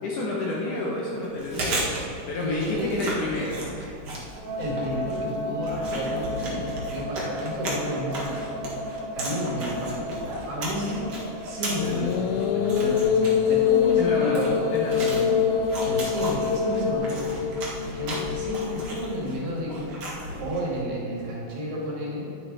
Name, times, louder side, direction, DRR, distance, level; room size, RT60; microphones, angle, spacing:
voice 1, 0.0-3.6 6.5-6.8 7.2-7.3 14.0-14.4 14.7-15.1, left 2 dB, 65° left, -3 dB, 2.2 m, -30 dB
Chewing mastication, 1.2-20.7, right 1 dB, 45° right, 1.9 m, -35 dB
voice 2, 2.4-3.0 4.6-8.4 9.2-11.1 11.4-14.7 15.0-15.6 15.8-22.3, equal, 70° right, -4 dB, 4.4 m, -32 dB
sound 1, 4.3-16.9, left 1 dB, 35° left, 2.0 m, -32 dB
sound 2, 11.8-19.2, left 8 dB, 85° left, 2.1 m, -25 dB
11.0 x 10.5 x 4.2 m, 2.8 s
omnidirectional pair, 4.8 m